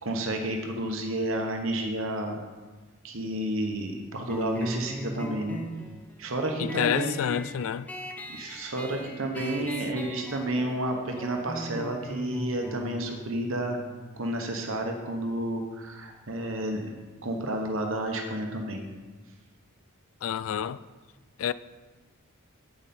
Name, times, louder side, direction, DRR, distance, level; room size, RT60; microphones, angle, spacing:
voice 1, 0.0-2.4 3.0-5.6 6.2-7.2 8.3-13.8 14.2-16.8 17.2-18.8, right 1 dB, 65° right, 1.0 m, -31 dB
sound 1, 4.3-15.4, equal, 5° left, 0.8 m, -40 dB
voice 2, 6.6-7.9 9.6-9.7 20.2-20.8 21.4-21.5, left 9 dB, 65° left, 0.3 m, -28 dB
9.0 x 8.0 x 4.3 m
head